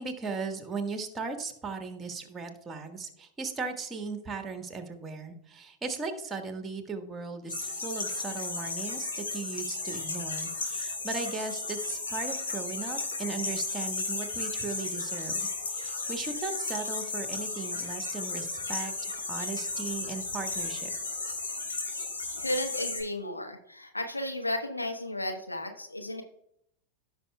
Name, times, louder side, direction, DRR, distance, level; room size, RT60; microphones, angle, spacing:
voice 1, 0.0-20.9, right 4 dB, 15° right, 6 dB, 1.4 m, -37 dB
sound 1, 7.5-23.0, left 3 dB, 70° left, 3.6 m, -34 dB
voice 2, 22.4-26.2, left 1 dB, 85° left, 4 dB, 1.1 m, -33 dB
16.0 x 6.3 x 2.3 m, 0.74 s
figure-of-eight pair, 90°, 0 cm